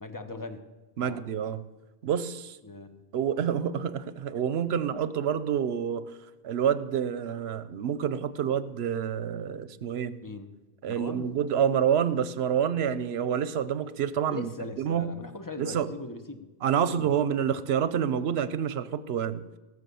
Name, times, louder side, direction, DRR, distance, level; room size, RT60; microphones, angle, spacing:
voice 1, 0.0-0.7 1.0-1.2 2.6-3.0 10.2-10.5 10.9-11.3 14.3-16.5 16.9-17.2, left 3 dB, 20° left, 8 dB, 1.0 m, -40 dB
voice 2, 1.0-1.6 2.0-2.6 3.1-6.1 6.4-10.2 10.8-14.5 14.8-15.1 15.6-15.9 16.6-19.4, right 8 dB, 80° right, 15 dB, 1.0 m, -28 dB
17.5 x 7.0 x 7.0 m, 1.1 s
omnidirectional pair, 1.1 m